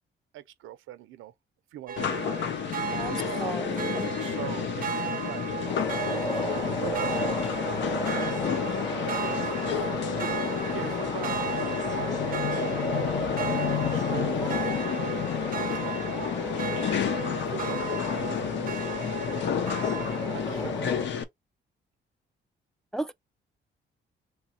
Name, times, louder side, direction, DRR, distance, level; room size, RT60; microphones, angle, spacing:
voice 1, 0.3-1.3 1.7-2.3 3.0-3.6 4.2-5.5 6.0-9.6 9.9-15.2 15.6-16.8 17.2-19.2 19.9-20.9, right 13 dB, 90° right, 0.7 m, -42 dB
sound 1, 1.9-20.6, right 7 dB, 45° right, 0.6 m, -36 dB
sound 2, 2.0-21.2, left 8 dB, 65° left, 0.8 m, -30 dB
voice 2, 2.9-4.1 22.9-23.1, right 1 dB, 5° left, 0.3 m, -34 dB
sound 3, 5.7-21.1, equal, 20° left, 1.0 m, -36 dB
3.2 x 2.4 x 4.3 m
cardioid pair, 90°, 20 cm